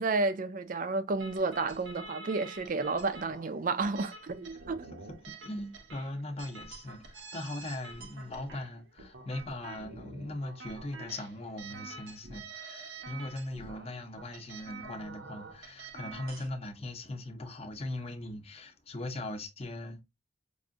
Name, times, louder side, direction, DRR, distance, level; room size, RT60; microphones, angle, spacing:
voice 1, 0.0-4.8, right 3 dB, 45° right, 0.5 m, -31 dB
sound 1, 1.2-16.5, right 3 dB, 80° right, 0.8 m, -48 dB
voice 2, 5.1-20.0, left 1 dB, 30° left, 0.7 m, -40 dB
4.8 x 2.6 x 2.5 m
head